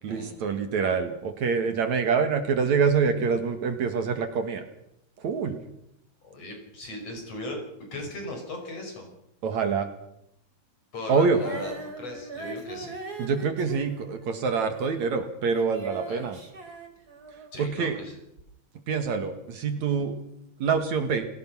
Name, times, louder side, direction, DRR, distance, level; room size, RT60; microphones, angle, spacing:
voice 1, 0.0-4.6 5.2-5.6 9.4-9.9 11.1-11.4 13.2-16.4 17.6-18.0 18.9-20.2 20.6-21.3, right 5 dB, 60° right, 7 dB, 3.0 m, -26 dB
voice 2, 6.2-7.6 7.9-9.1 10.9-13.0 16.1-16.3 17.5-18.2, left 2 dB, 50° left, 3 dB, 6.7 m, -37 dB
Female singing, 11.3-17.7 18.4-18.5, right 3 dB, 30° right, 3.5 m, -41 dB
29.5 x 18.0 x 6.1 m, 0.80 s
omnidirectional pair, 3.8 m